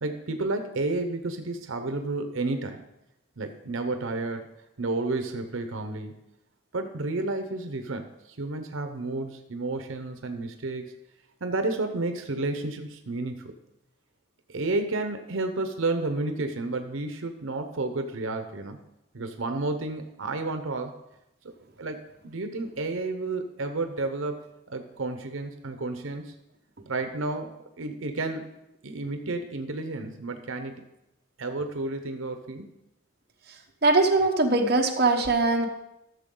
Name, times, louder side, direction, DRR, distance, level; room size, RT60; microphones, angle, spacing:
voice 1, 0.0-2.8 3.4-4.5 4.8-6.2 6.7-10.9 11.4-13.5 14.5-18.8 19.1-21.0 21.8-24.4 24.7-26.3 26.9-28.5 28.8-30.8 31.4-32.7, right 2 dB, 85° right, 7 dB, 0.8 m, -31 dB
voice 2, 33.8-35.7, right 2 dB, 50° right, 2 dB, 1.0 m, -21 dB
14.0 x 6.9 x 3.8 m, 0.88 s
head